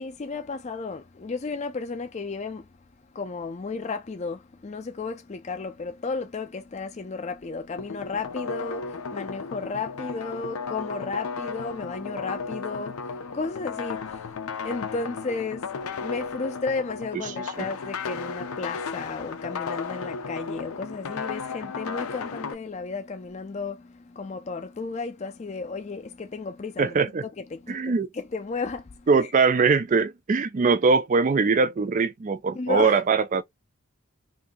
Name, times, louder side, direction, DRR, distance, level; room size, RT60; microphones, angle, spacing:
voice 1, 0.0-2.7 3.1-14.3 14.6-15.7 16.0-27.0 27.4-29.1 32.5-33.0, left 4 dB, 30° left, 0.4 m, -33 dB
sound 1, 7.8-22.5, left 5 dB, 85° left, 0.6 m, -34 dB
voice 2, 26.8-27.2 27.7-28.1 29.1-33.4, right 4 dB, 35° right, 0.3 m, -22 dB
2.7 x 2.6 x 3.5 m
head